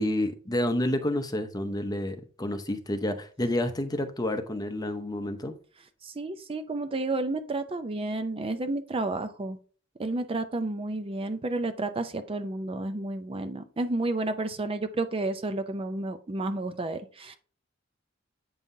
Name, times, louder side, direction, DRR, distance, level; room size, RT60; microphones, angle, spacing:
voice 1, 0.0-5.5, left 1 dB, 20° left, 0.7 m, -29 dB
voice 2, 6.0-9.6 10.0-17.4, right 2 dB, 30° right, 0.5 m, -31 dB
8.3 x 5.5 x 2.7 m
head